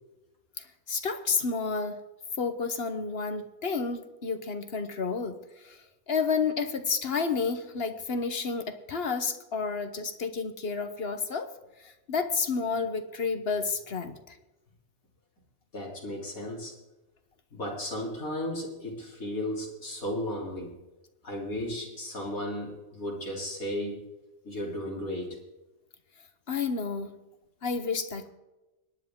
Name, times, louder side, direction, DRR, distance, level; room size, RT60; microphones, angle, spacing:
voice 1, 0.6-2.0 2.4-5.4 5.6-5.8 6.1-11.5 11.8-14.4 26.5-27.2 27.6-28.3, left 5 dB, 50° left, 9 dB, 1.1 m, -30 dB
voice 2, 15.7-16.7 17.5-20.7 21.2-24.0 24.4-25.4, left 1 dB, 85° left, -3 dB, 3.9 m, -34 dB
24.5 x 10.0 x 3.7 m, 1.0 s
omnidirectional pair, 1.4 m